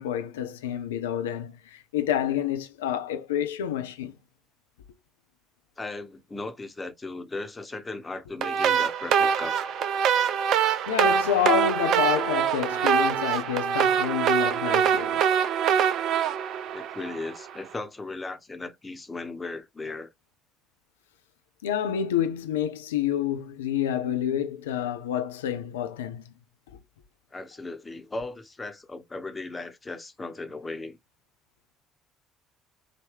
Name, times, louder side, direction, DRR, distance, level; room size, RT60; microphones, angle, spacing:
voice 1, 0.0-4.1 10.9-15.2 21.6-26.2, left 9 dB, 75° left, 0.6 m, -28 dB
voice 2, 5.8-9.6 16.7-20.1 27.3-31.0, left 3 dB, 20° left, 1.1 m, -37 dB
sound 1, 8.4-17.5, right 8 dB, 55° right, 0.7 m, -24 dB
5.0 x 2.6 x 3.5 m
figure-of-eight pair, 55°, 0 cm